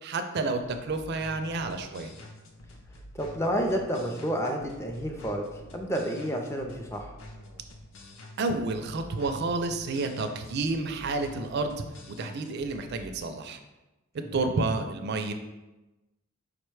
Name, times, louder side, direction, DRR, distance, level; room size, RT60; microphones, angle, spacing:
voice 1, 0.0-2.1 8.4-11.8 12.1-13.6 14.3-15.3, right 3 dB, 50° right, 7 dB, 0.4 m, -30 dB
sound 1, 0.6-13.2, left 1 dB, 65° left, 0.5 m, -48 dB
voice 2, 3.1-7.1 14.2-14.5, equal, 15° left, 2 dB, 0.4 m, -30 dB
4.9 x 2.2 x 4.6 m, 1.0 s
head